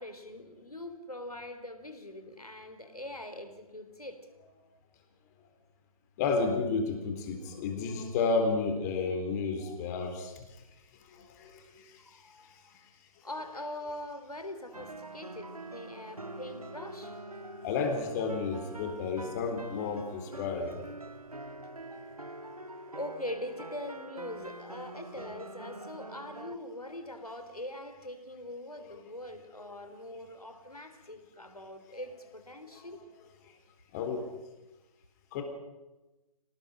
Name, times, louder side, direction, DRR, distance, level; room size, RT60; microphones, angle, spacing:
voice 1, 0.0-4.2 12.1-12.7 13.2-17.1 22.9-33.0, left 1 dB, 85° left, 7 dB, 3.5 m, -42 dB
voice 2, 6.2-10.4 11.0-12.9 16.8-17.0 17.6-20.9 28.8-28.9 33.9-34.3 35.3-35.4, left 4 dB, 30° left, 5 dB, 3.8 m, -32 dB
sound 1, 14.7-26.6, right 1 dB, 85° right, 1.6 m, -45 dB
24.5 x 18.5 x 6.4 m, 1.1 s
figure-of-eight pair, 135°, 19 cm